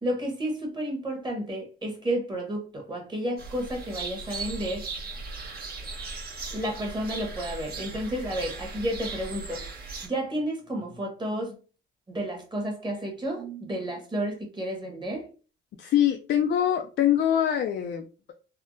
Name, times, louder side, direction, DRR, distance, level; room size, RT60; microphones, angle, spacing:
voice 1, 0.0-4.9 6.5-9.6 10.0-11.6 12.1-15.3, right 1 dB, 20° right, 1.2 m, -31 dB
sound 1, 3.4-10.1, right 3 dB, 50° right, 1.2 m, -38 dB
voice 2, 15.8-18.3, left 10 dB, 60° left, 0.4 m, -24 dB
3.5 x 2.1 x 2.5 m
cardioid pair, 90°, 20 cm